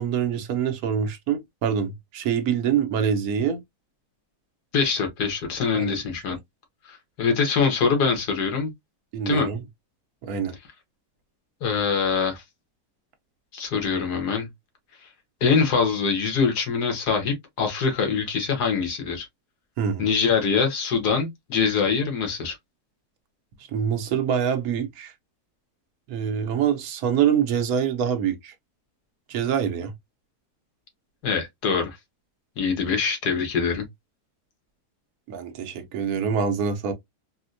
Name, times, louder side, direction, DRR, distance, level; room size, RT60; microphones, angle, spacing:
voice 1, 0.0-3.6 5.7-5.9 9.1-9.6 10.2-10.5 19.8-20.0 23.7-25.1 26.1-28.5 29.3-29.9 35.3-36.9, right 8 dB, 70° right, 1.1 m, -25 dB
voice 2, 4.7-6.4 6.9-8.7 9.2-9.5 11.6-12.4 13.5-14.5 15.4-19.3 20.0-22.6 31.2-32.0 32.6-33.8, left 5 dB, 85° left, 1.7 m, -24 dB
4.2 x 2.1 x 2.4 m
omnidirectional pair, 1.7 m